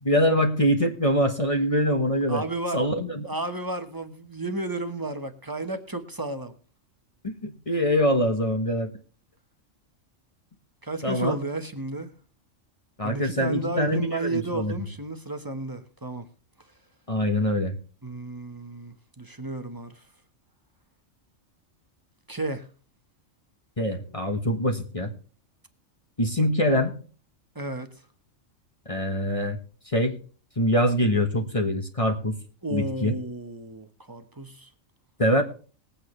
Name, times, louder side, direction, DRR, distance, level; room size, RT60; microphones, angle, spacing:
voice 1, 0.0-2.4 2.7-3.3 7.2-8.9 11.0-11.4 13.0-14.7 17.1-17.8 23.8-25.1 26.2-26.9 28.9-29.6 29.9-30.2 30.6-32.4 32.7-33.2 35.2-35.4, equal, 25° left, 1.4 m, -24 dB
voice 2, 2.3-2.8 3.3-6.5 10.8-12.1 13.0-16.3 16.6-16.7 18.0-20.1 22.3-22.7 26.4-26.5 27.5-28.0 32.6-34.7, right 2 dB, 15° right, 1.2 m, -32 dB
21.0 x 8.7 x 3.2 m
omnidirectional pair, 1.3 m